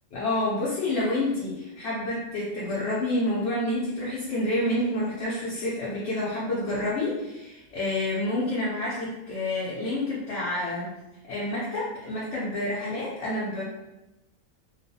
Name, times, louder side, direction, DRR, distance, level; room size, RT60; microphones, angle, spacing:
voice 1, 0.1-11.0 11.3-13.6, left 1 dB, 70° left, -8 dB, 0.9 m, -28 dB
2.4 x 2.3 x 2.6 m, 0.98 s
omnidirectional pair, 1.3 m